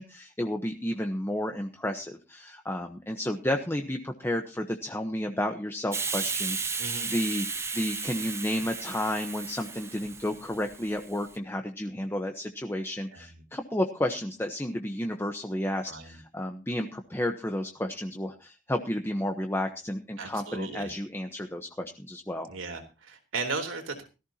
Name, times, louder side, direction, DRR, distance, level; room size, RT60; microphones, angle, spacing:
voice 1, 0.0-22.5, left 1 dB, 10° left, 5 dB, 1.1 m, -32 dB
Hiss, 5.9-11.3, right 4 dB, 15° right, 0.9 m, -34 dB
voice 2, 6.8-7.1 13.1-13.4 15.9-16.2 20.2-20.9 22.5-24.0, right 4 dB, 90° right, 5 dB, 3.6 m, -36 dB
18.0 x 14.5 x 2.9 m, 0.30 s
head